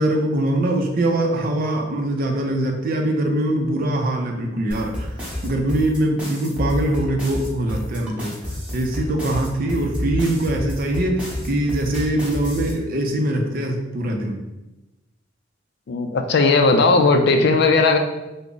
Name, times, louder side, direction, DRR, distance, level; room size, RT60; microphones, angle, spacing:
voice 1, 0.0-5.1 5.4-8.3 8.7-14.4, right 1 dB, 50° right, 2 dB, 0.5 m, -22 dB
sound 1, 4.7-12.7, left 1 dB, 5° right, 0.9 m, -29 dB
voice 2, 15.9-18.0, left 3 dB, 65° left, 6 dB, 0.4 m, -16 dB
3.4 x 2.0 x 3.7 m, 1.0 s
head